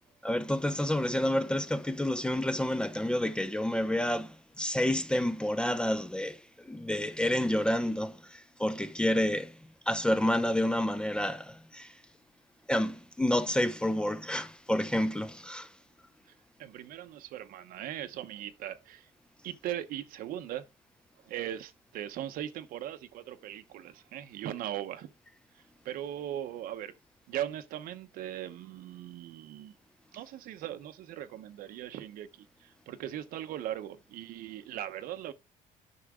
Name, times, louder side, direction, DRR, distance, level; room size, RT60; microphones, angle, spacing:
voice 1, 0.2-9.6 9.9-11.9 12.7-15.7, left 1 dB, 5° left, 0.5 m, -29 dB
voice 2, 16.6-19.1 19.4-20.6 21.3-25.1 25.8-26.9 27.3-29.7 30.1-32.3 32.6-35.3, right 12 dB, 85° right, 0.9 m, -39 dB
9.8 x 5.9 x 3.6 m
cardioid pair, 155°, 14 cm